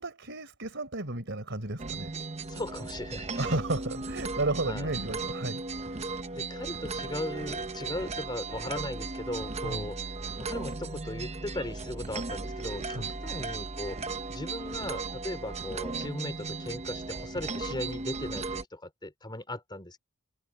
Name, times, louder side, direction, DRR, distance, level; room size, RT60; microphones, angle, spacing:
voice 1, 0.0-2.1 3.4-5.6 5.9-6.0 9.6-9.9 12.9-13.1, right 2 dB, 60° right, 4.3 m, -33 dB
sound 1, 1.8-18.6, right 3 dB, 30° right, 0.9 m, -36 dB
voice 2, 2.5-3.4 4.7-4.9 6.3-10.0 10.4-14.0 14.3-20.0, left 1 dB, 20° left, 3.4 m, -38 dB
head